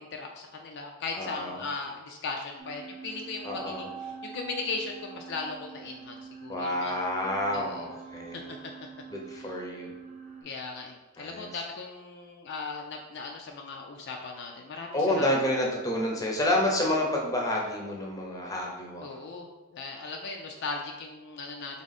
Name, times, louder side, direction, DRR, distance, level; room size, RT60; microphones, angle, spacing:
voice 1, 0.0-7.0 7.5-7.9 8.3-8.6 9.4-9.6 10.4-15.3 19.0-21.8, left 4 dB, 50° left, 2 dB, 0.4 m, -38 dB
voice 2, 1.2-1.6 3.4-3.9 6.5-8.5 9.1-9.9 11.2-11.5 14.9-19.2, left 1 dB, 15° left, -1 dB, 0.7 m, -29 dB
sound 1, 2.6-10.4, right 6 dB, 30° right, 0.9 m, -45 dB
3.7 x 3.4 x 4.0 m, 1.2 s
head